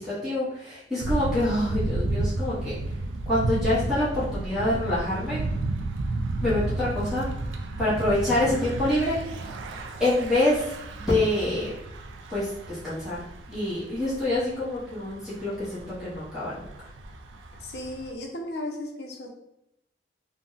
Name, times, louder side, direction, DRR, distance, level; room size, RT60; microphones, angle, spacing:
voice 1, 0.0-2.8 3.3-5.4 6.4-7.3 7.8-9.5 10.0-10.6 11.0-11.7 12.3-13.2 13.5-16.7, left 1 dB, ahead, -11 dB, 0.8 m, -26 dB
Thunder / Bicycle, 1.0-18.1, right 2 dB, 85° right, 0.4 m, -32 dB
voice 2, 17.6-19.3, left 1 dB, 60° left, 2 dB, 0.5 m, -35 dB
2.6 x 2.0 x 3.8 m, 0.82 s
head